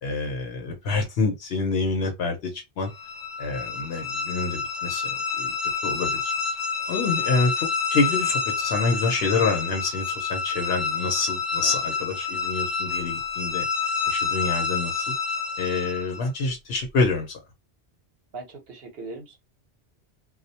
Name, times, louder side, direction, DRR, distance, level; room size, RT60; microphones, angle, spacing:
voice 1, 0.0-2.9 3.4-5.5 5.8-13.7 14.1-15.1 15.6-17.4, left 3 dB, 80° left, 1.0 m, -27 dB
sound 1, 2.9-16.3, left 5 dB, 45° left, 0.5 m, -28 dB
voice 2, 18.3-19.4, right 3 dB, 70° right, 1.0 m, -39 dB
2.3 x 2.1 x 2.7 m
omnidirectional pair, 1.0 m